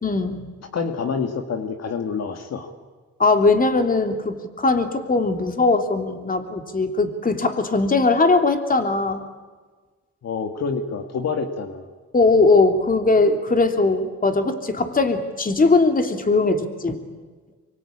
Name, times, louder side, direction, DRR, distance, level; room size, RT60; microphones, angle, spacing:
voice 1, 0.0-0.4 3.2-9.3 12.1-17.0, left 3 dB, 30° left, 6 dB, 3.0 m, -20 dB
voice 2, 0.7-2.7 10.2-11.9, left 5 dB, 55° left, 6 dB, 2.1 m, -27 dB
25.0 x 23.5 x 8.8 m, 1.4 s
cardioid pair, 90°, 30 cm